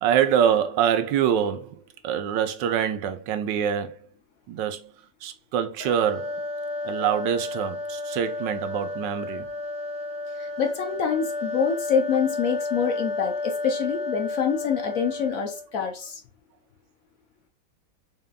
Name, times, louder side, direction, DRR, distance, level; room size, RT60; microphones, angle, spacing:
voice 1, 0.0-4.0 4.5-4.9 5.2-6.3 6.8-9.5, right 9 dB, 90° right, 1.3 m, -25 dB
sound 1, 5.8-15.7, left 2 dB, 40° left, 0.8 m, -32 dB
voice 2, 10.4-16.2, left 6 dB, 65° left, 0.9 m, -26 dB
4.1 x 3.6 x 2.2 m
omnidirectional pair, 1.9 m